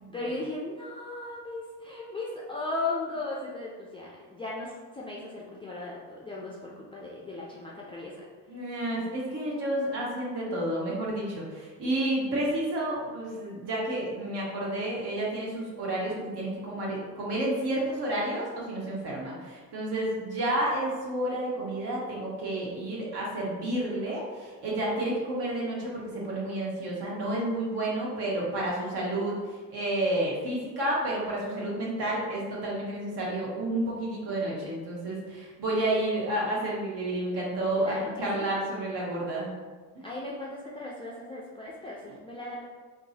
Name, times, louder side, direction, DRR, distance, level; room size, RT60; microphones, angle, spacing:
voice 1, 0.1-8.2 37.8-38.5 40.0-42.6, left 2 dB, 10° left, -6 dB, 0.3 m, -37 dB
voice 2, 8.5-39.5 39.9-40.1, right 1 dB, 50° right, -4 dB, 1.3 m, -30 dB
3.6 x 2.3 x 2.8 m, 1.4 s
hypercardioid pair, 60°, 50 cm